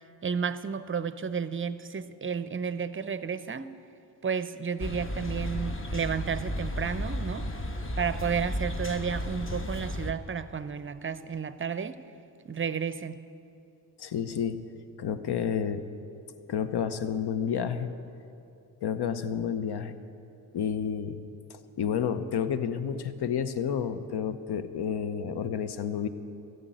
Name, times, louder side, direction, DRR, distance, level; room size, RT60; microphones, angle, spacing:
voice 1, 0.2-3.7 4.2-7.5 8.0-12.0 12.4-13.2, right 6 dB, 30° right, 14 dB, 0.6 m, -32 dB
sound 1, 4.8-10.1, left 1 dB, 30° left, 1.1 m, -33 dB
voice 2, 14.0-14.6 15.0-15.8 16.5-17.9 18.8-19.9 20.5-21.2 21.5-26.1, left 7 dB, 65° left, 12 dB, 0.9 m, -30 dB
14.0 x 6.8 x 9.1 m, 2.6 s
supercardioid pair, 45°, 44 cm